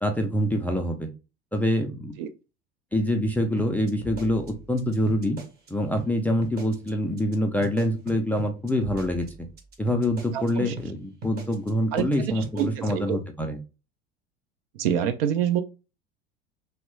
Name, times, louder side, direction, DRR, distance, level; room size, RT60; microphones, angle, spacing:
voice 1, 0.0-1.1 1.5-2.1 2.9-5.4 5.7-9.3 9.8-13.6, equal, 5° left, 0.3 m, -25 dB
sound 1, 3.6-5.7 6.0-6.1 6.4-6.9 7.2-7.4 7.6-10.5 10.8-10.9 11.2-11.7 12.0-12.1 12.4-13.0, equal, 30° right, 0.8 m, -39 dB
voice 2, 10.3-10.7 11.9-12.1 12.3-13.2 14.7-15.6, right 9 dB, 60° right, 0.5 m, -26 dB
2.9 x 2.1 x 3.1 m
figure-of-eight pair, 75°, 33 cm